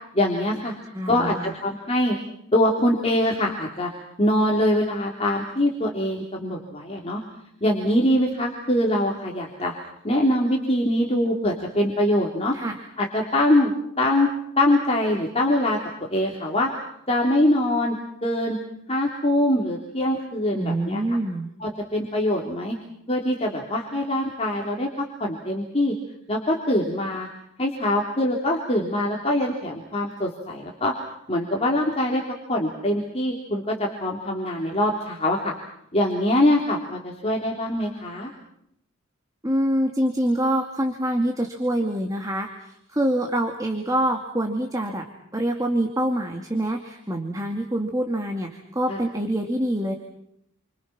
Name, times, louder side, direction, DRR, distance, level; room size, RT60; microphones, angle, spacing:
voice 1, 0.1-0.8 1.0-2.2 2.5-3.9 4.2-7.2 7.6-9.7 10.0-12.5 13.0-13.7 14.0-15.8 16.1-16.7 17.1-18.6 18.9-21.0 21.6-22.8 23.1-25.9 26.3-27.3 27.6-30.9 31.3-32.2 32.5-35.5 35.9-38.3 48.9-49.0, left 1 dB, 30° left, -1 dB, 3.3 m, -23 dB
voice 2, 0.9-1.5 12.5-12.8 20.5-21.5 39.4-45.1 45.3-49.9, right 1 dB, 15° right, 2 dB, 2.3 m, -25 dB
29.5 x 25.5 x 6.0 m, 0.75 s
head